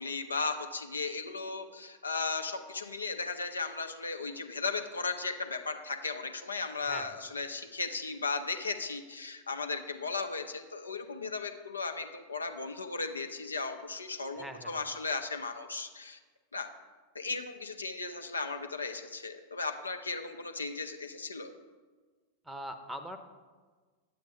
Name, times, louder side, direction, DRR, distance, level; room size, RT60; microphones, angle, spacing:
voice 1, 0.0-16.2 16.5-16.7 17.1-21.5, left 4 dB, 75° left, 6 dB, 0.6 m, -36 dB
voice 2, 6.8-7.2 14.3-14.8 22.4-23.2, equal, 5° right, 8 dB, 0.7 m, -42 dB
8.9 x 7.7 x 3.8 m, 1.4 s
figure-of-eight pair, 90°, 0 cm